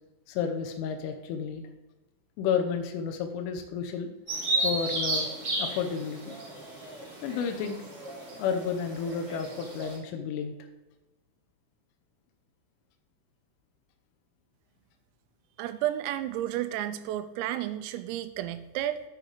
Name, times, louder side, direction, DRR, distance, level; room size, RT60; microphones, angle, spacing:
voice 1, 0.3-1.6 2.4-4.1 4.6-5.3 5.6-6.3 7.2-7.8 8.4-10.5, left 6 dB, 80° left, 6 dB, 3.1 m, -31 dB
Bird vocalization bird call bird song, 4.3-10.0, right 2 dB, 30° right, 3.5 m, -33 dB
voice 2, 15.6-19.0, right 12 dB, 85° right, 10 dB, 3.3 m, -32 dB
8.2 x 6.3 x 4.9 m, 1.1 s
omnidirectional pair, 5.9 m